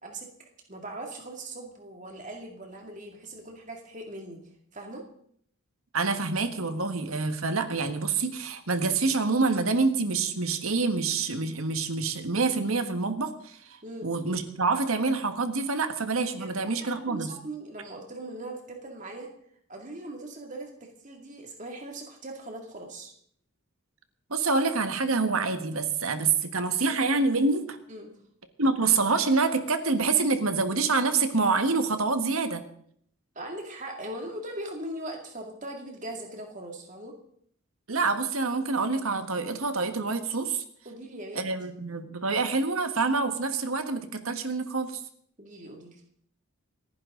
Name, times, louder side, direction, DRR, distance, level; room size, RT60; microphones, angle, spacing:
voice 1, 0.0-4.4 4.7-5.0 13.8-14.1 16.4-16.5 16.8-19.3 19.7-23.1 27.9-28.1 33.4-37.1 40.8-41.4 45.4-46.0, right 1 dB, 35° right, 2 dB, 2.4 m, -40 dB
voice 2, 5.9-13.6 14.0-17.3 24.3-27.8 28.6-32.6 37.9-40.6 41.3-45.0, right 4 dB, 75° right, 8 dB, 1.6 m, -26 dB
28.5 x 10.5 x 3.9 m, 0.64 s
head